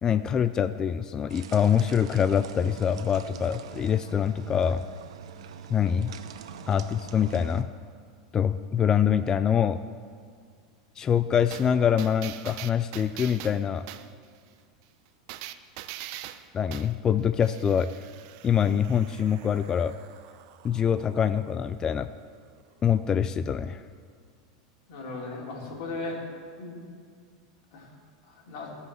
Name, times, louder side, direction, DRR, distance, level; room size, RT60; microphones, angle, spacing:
voice 1, 0.0-4.8 5.7-6.1 6.7-7.7 8.3-9.8 11.0-13.9 16.5-17.9 18.4-19.9 20.6-22.1 22.8-23.8, left 8 dB, 20° left, 12 dB, 0.3 m, -24 dB
sound 1, 1.3-7.6, right 7 dB, 85° right, 0.8 m, -43 dB
sound 2, 11.5-14.1 15.3-17.0 17.4-22.6 23.0-23.1, right 13 dB, 55° right, 0.6 m, -44 dB
voice 2, 24.9-26.2 26.6-26.8 27.7-27.9 28.3-28.7, left 3 dB, 60° left, -1 dB, 3.2 m, -37 dB
16.0 x 5.7 x 7.5 m, 2.1 s
supercardioid pair, 135°, 3 cm